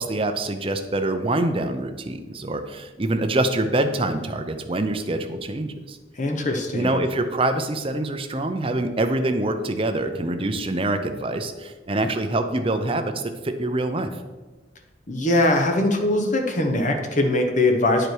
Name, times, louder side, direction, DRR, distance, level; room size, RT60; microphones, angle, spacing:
voice 1, 0.0-6.0 6.7-14.2, right 2 dB, 30° right, 7 dB, 0.6 m, -25 dB
voice 2, 6.2-7.0 15.1-18.1, left 1 dB, 40° left, 4 dB, 0.9 m, -21 dB
9.8 x 5.0 x 4.6 m, 1.2 s
head